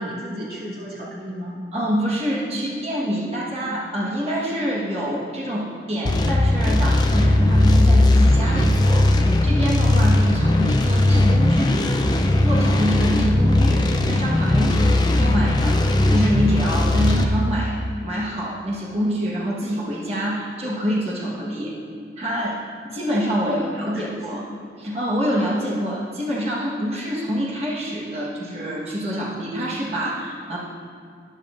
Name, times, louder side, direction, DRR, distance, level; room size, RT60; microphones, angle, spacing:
voice 1, 0.0-1.6 23.4-24.2, equal, 60° right, -7 dB, 2.5 m, -32 dB
voice 2, 1.7-21.7 22.2-24.5 24.8-30.6, equal, 35° right, -5 dB, 1.3 m, -26 dB
sound 1, 6.0-17.2, left 1 dB, 25° left, 0.5 m, -18 dB
13.0 x 9.8 x 2.5 m, 2.3 s
head